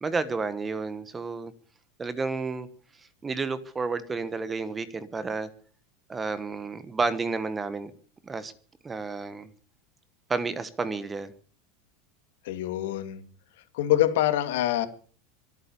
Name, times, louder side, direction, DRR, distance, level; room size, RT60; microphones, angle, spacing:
voice 1, 0.0-1.5 2.0-2.7 3.2-5.5 6.1-7.9 8.2-8.5 8.8-9.5 10.3-11.3, right 4 dB, 15° right, 15 dB, 1.1 m, -31 dB
voice 2, 12.4-13.2 13.7-14.9, left 13 dB, 75° left, 11 dB, 2.4 m, -25 dB
23.5 x 8.9 x 6.9 m, 0.43 s
supercardioid pair, 165°, 0 cm